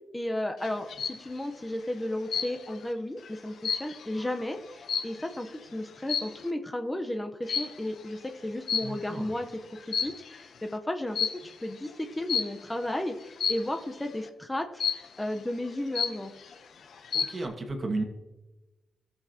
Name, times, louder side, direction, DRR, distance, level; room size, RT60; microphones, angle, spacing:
voice 1, 0.1-9.5 9.9-16.3, left 1 dB, 15° left, 5 dB, 0.8 m, -34 dB
sound 1, 0.6-1.2 2.3-2.8 3.2-5.5 6.0-6.5 7.5-7.9 8.7-9.3 9.8-10.4 11.1-11.5 12.3-12.7 13.4-13.8 14.8-15.3 15.7-15.8 15.9-16.5 16.9-17.4, left 7 dB, 70° left, 0.7 m, -31 dB
voice 2, 8.8-9.3 17.1-18.0, right 2 dB, 35° right, 4 dB, 1.6 m, -33 dB
13.5 x 7.2 x 2.8 m, 1.1 s
cardioid pair, 70°, 0 cm